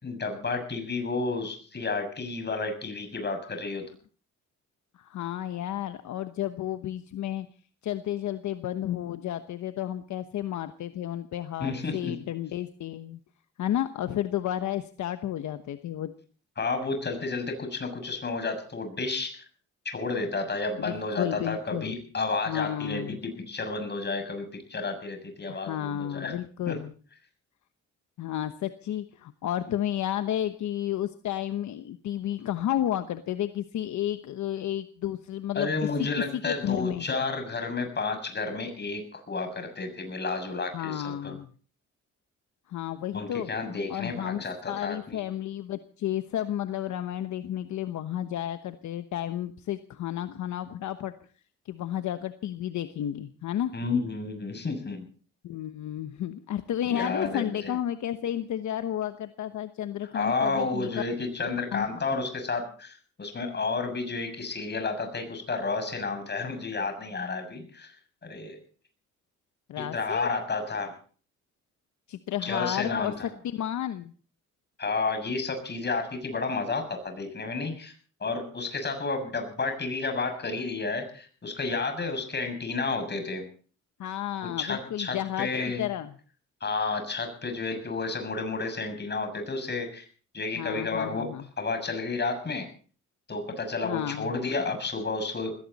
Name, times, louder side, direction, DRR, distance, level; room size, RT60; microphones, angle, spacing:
voice 1, 0.0-3.9 11.6-12.2 16.6-19.4 19.8-26.3 26.7-26.8 35.5-41.4 43.1-45.2 53.7-55.1 56.8-57.8 60.1-67.9 68.2-68.6 69.8-70.9 72.4-73.3 74.8-77.9 78.2-83.5 84.4-85.9 86.6-90.0 90.3-92.7 93.3-95.6, left 3 dB, 35° left, 7 dB, 6.8 m, -31 dB
voice 2, 4.9-7.5 7.8-13.2 13.6-16.1 20.8-21.9 22.5-23.2 25.5-26.9 28.2-35.7 36.0-37.1 40.7-41.5 42.7-43.5 43.9-51.1 51.7-53.7 55.4-60.9 61.7-61.9 69.7-70.3 72.1-73.1 73.4-74.1 84.0-85.5 85.8-86.1 90.5-91.4 93.8-94.3, left 11 dB, 70° left, 10 dB, 1.1 m, -32 dB
20.0 x 17.0 x 4.1 m, 0.42 s
cardioid pair, 90°, 30 cm